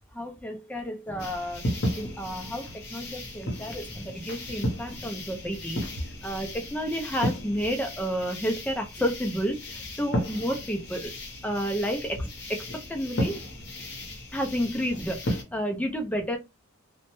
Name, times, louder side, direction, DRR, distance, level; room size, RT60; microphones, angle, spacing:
voice 1, 0.1-1.7 2.0-11.1 11.4-13.4 14.3-16.4, equal, 5° left, 4 dB, 0.3 m, -31 dB
sound 1, 1.2-15.4, equal, 50° left, 0.7 m, -34 dB
2.1 x 2.0 x 2.9 m, 0.25 s
head